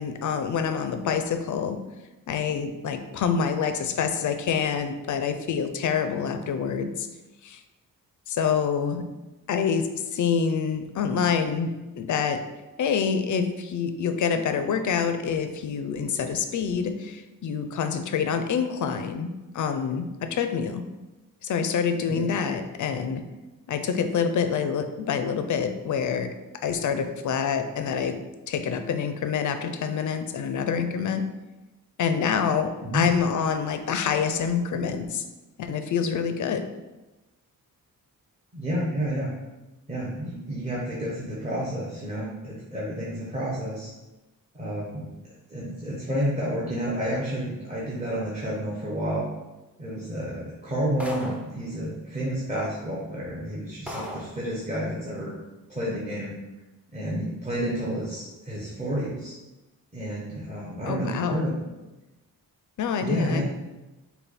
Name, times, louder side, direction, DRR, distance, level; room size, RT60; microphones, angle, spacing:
voice 1, 0.0-1.8 2.3-7.1 7.4-7.6 8.3-9.1 9.5-12.4 12.8-20.9 21.4-23.3 23.7-26.4 26.6-31.3 32.0-35.2 35.6-36.7 60.9-61.4 62.8-63.4, left 6 dB, 55° left, 8 dB, 0.5 m, -26 dB
voice 2, 38.5-39.3 39.9-43.9 44.5-49.3 49.8-55.4 55.7-56.3 56.9-59.3 59.9-61.6 63.0-63.4, equal, 20° right, -7 dB, 0.9 m, -30 dB
sound 1, 51.0-51.6 52.6-52.7 53.2-53.4 53.9-54.4, left 1 dB, 5° right, 0.5 m, -36 dB
5.4 x 2.3 x 4.1 m, 1.1 s
wide cardioid pair, 160°, 36 cm